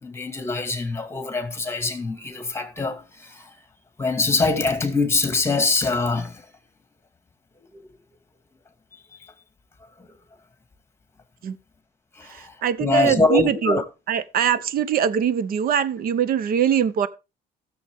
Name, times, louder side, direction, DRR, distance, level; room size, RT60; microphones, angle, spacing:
voice 1, 0.0-3.5 4.0-6.5 7.7-7.9 8.9-9.3 10.0-10.1 12.2-13.8, left 3 dB, 15° left, 2.2 m, -24 dB
voice 2, 12.4-13.8 14.1-17.1, right 8 dB, 60° right, 1.0 m, -22 dB
15.5 x 7.0 x 3.7 m
cardioid pair, 110°, 17 cm